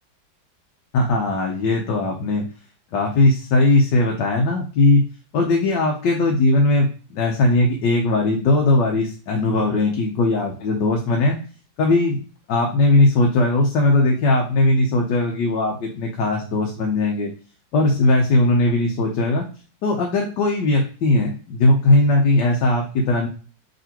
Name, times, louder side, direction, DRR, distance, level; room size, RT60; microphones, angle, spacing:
voice 1, 0.9-2.4 2.9-5.0 5.3-11.4 11.8-12.2 12.5-17.3 17.7-19.4 19.8-23.3, left 2 dB, 70° left, 1 dB, 1.4 m, -19 dB
5.1 x 3.3 x 2.9 m, 0.38 s
omnidirectional pair, 2.1 m